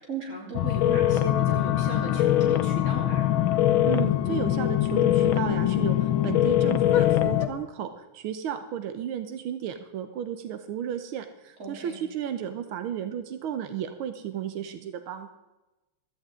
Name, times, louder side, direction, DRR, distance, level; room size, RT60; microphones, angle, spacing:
voice 1, 0.0-3.2 11.6-12.0, right 2 dB, 35° right, -2 dB, 3.8 m, -36 dB
sound 1, 0.5-7.5, left 12 dB, 80° left, 1.6 m, -23 dB
voice 2, 3.8-15.3, right 9 dB, 90° right, 9 dB, 1.7 m, -33 dB
16.0 x 14.0 x 3.7 m, 1.0 s
omnidirectional pair, 2.2 m